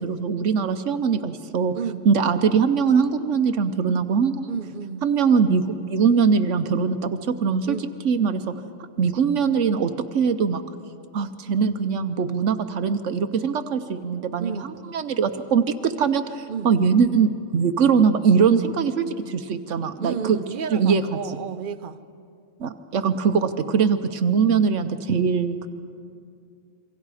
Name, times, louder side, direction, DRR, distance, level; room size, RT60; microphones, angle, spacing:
voice 1, 0.0-1.7 2.0-4.5 5.0-7.8 8.0-8.4 9.0-10.6 11.1-20.4 20.7-21.4 22.6-25.7, right 6 dB, 70° right, 9 dB, 1.1 m, -22 dB
voice 2, 4.5-5.1 7.7-7.8 14.4-14.7 16.5-16.7 20.0-22.0, right 7 dB, 45° right, 9 dB, 0.9 m, -31 dB
27.5 x 23.5 x 4.9 m, 2.4 s
omnidirectional pair, 1.3 m